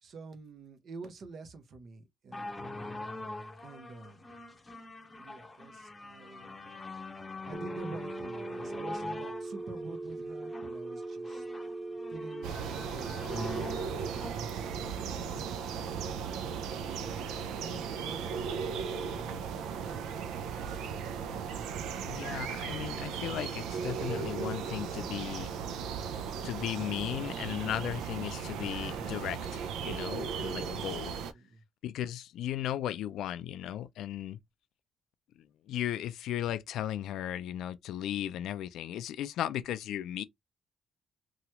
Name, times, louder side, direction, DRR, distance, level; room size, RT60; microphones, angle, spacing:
voice 1, 0.0-2.6 3.6-4.3 5.2-6.6 7.4-11.5 12.1-15.5 17.6-21.0 30.8-31.6, right 3 dB, 60° right, 0.8 m, -49 dB
sound 1, 2.3-15.9 16.7-16.8, left 2 dB, 20° left, 0.7 m, -44 dB
Telephone, 7.5-12.5, right 2 dB, 35° right, 0.5 m, -40 dB
sound 2, 12.4-31.3, right 6 dB, 90° right, 0.4 m, -36 dB
voice 2, 22.0-25.5 26.4-31.1 31.8-34.4 35.7-40.2, left 11 dB, 80° left, 0.3 m, -36 dB
2.9 x 2.3 x 2.8 m
cardioid pair, 90°, 0 cm